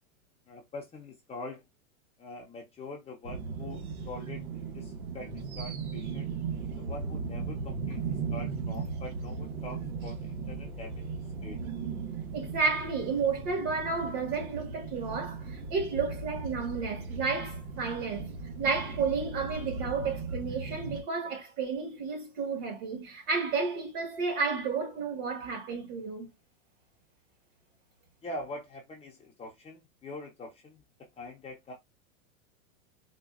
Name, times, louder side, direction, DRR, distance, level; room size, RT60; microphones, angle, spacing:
voice 1, 0.5-1.6 2.2-6.3 6.8-11.1 11.4-11.6 28.2-31.7, left 2 dB, 15° left, 0.7 m, -44 dB
sound 1, 3.2-21.0, right 5 dB, 90° right, 1.4 m, -37 dB
voice 2, 12.3-26.3, right 4 dB, 45° right, 1.7 m, -32 dB
4.2 x 2.4 x 2.4 m
supercardioid pair, 135°, 42 cm